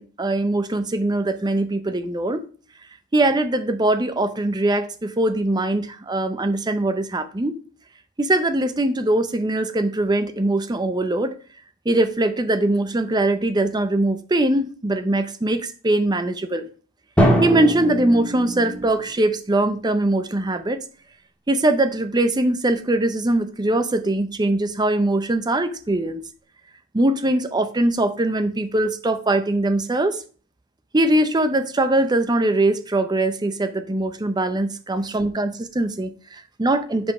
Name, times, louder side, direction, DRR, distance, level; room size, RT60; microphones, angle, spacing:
voice 1, 0.0-2.5 3.1-7.6 8.2-11.3 11.9-16.6 17.4-20.8 21.5-26.2 26.9-30.2 30.9-37.1, right 1 dB, 20° right, 0.6 m, -21 dB
Drum, 17.2-19.1, equal, 5° left, 1.5 m, -21 dB
5.3 x 5.2 x 4.8 m
head